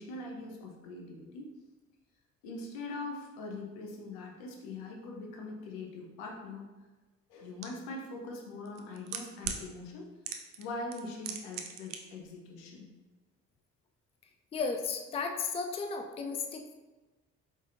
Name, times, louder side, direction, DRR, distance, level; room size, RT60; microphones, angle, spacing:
voice 1, 0.0-1.5 2.4-6.7 7.3-10.1 10.6-12.9, left 2 dB, 65° left, 0 dB, 0.9 m, -42 dB
sound 1, 7.6-7.7 8.6-9.6 10.2-10.6 10.9-12.0 12.2-12.3, right 9 dB, 55° right, 0.6 m, -37 dB
voice 2, 14.5-16.7, left 4 dB, 15° left, 4 dB, 0.4 m, -34 dB
4.8 x 3.6 x 2.7 m, 1.2 s
figure-of-eight pair, 45°, 38 cm